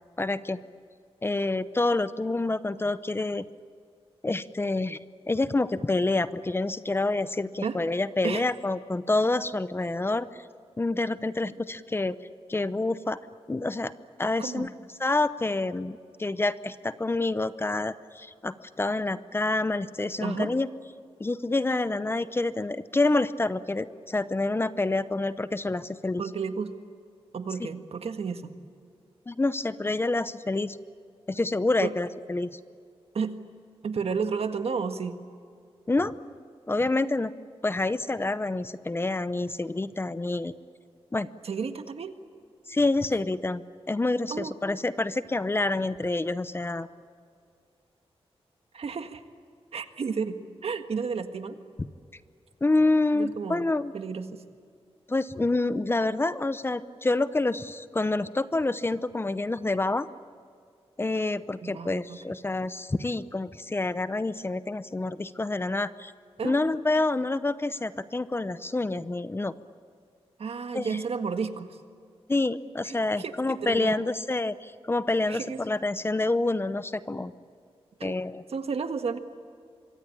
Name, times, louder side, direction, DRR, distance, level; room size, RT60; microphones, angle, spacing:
voice 1, 0.2-0.6 1.2-3.5 4.2-5.0 5.3-10.3 10.8-12.2 12.5-13.2 13.5-13.9 14.2-14.7 15.0-20.7 21.2-26.2 29.3-30.8 31.3-32.6 35.9-36.1 36.7-37.3 37.6-40.5 41.1-41.3 42.7-43.6 43.9-46.9 51.8-51.9 52.6-53.9 55.1-60.1 61.0-66.1 66.4-69.5 70.7-71.0 72.3-77.3 78.0-78.4, left 2 dB, 20° left, 14 dB, 0.7 m, -27 dB
voice 2, 20.2-20.5 26.2-26.7 27.3-28.6 31.8-31.9 33.1-33.4 33.8-35.2 41.4-42.1 44.3-44.5 48.7-49.2 49.7-50.3 50.6-51.6 53.1-53.7 53.9-54.4 61.6-62.2 66.4-66.6 70.4-71.8 72.8-74.0 75.3-75.6 78.0-78.2 78.5-79.2, right 5 dB, 70° right, 8 dB, 1.7 m, -32 dB
26.0 x 24.0 x 8.7 m, 2.2 s
wide cardioid pair, 135°, 11 cm